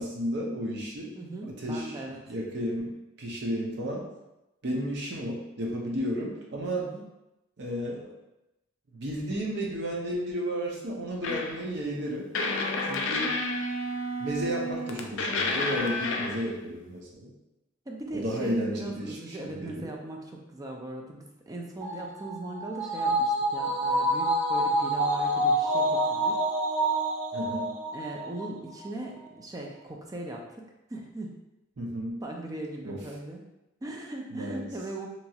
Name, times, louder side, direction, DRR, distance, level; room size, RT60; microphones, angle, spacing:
voice 1, 0.0-1.1 1.6-2.0 2.3-4.1 4.6-6.9 7.6-8.1 8.9-12.3 12.8-13.4 14.2-17.3 18.1-19.2 19.4-19.9 27.3-27.7 31.8-32.2 32.8-33.0 34.3-34.7, equal, 60° right, -2 dB, 0.6 m, -33 dB
voice 2, 1.2-2.3 6.8-7.0 17.9-26.4 27.9-31.4 32.2-33.5 33.8-35.1, right 1 dB, 20° right, 0 dB, 0.3 m, -39 dB
sound 1, 11.2-11.6 12.3-16.5, left 2 dB, 65° left, 0.4 m, -30 dB
sound 2, 21.8-28.5 28.8-28.9, right 1 dB, 90° right, 1.3 m, -27 dB
2.9 x 2.4 x 2.7 m, 0.93 s
head